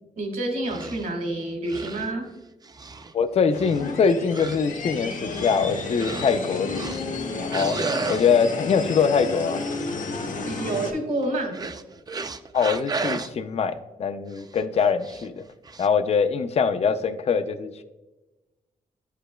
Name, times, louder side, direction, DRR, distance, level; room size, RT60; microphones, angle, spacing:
voice 1, 0.2-2.3 10.4-11.7, right 2 dB, 70° right, 2 dB, 1.7 m, -28 dB
sound 1, 0.6-1.1 1.7-2.1 2.6-3.1 3.6-3.9 4.3-4.7 5.2-5.6 6.0-6.4 6.7-7.2 7.5-8.3 11.2-13.3 14.4-14.6 15.0-15.3 15.6-15.9, right 4 dB, 25° right, 0.4 m, -33 dB
voice 2, 3.1-7.8 8.1-9.6 12.5-15.4 15.8-17.8, left 6 dB, 45° left, 10 dB, 0.4 m, -23 dB
sound 2, 3.5-10.9, left 3 dB, 60° left, 0.8 m, -32 dB
9.6 x 5.0 x 2.2 m, 1.1 s
cardioid pair, 85°, 15 cm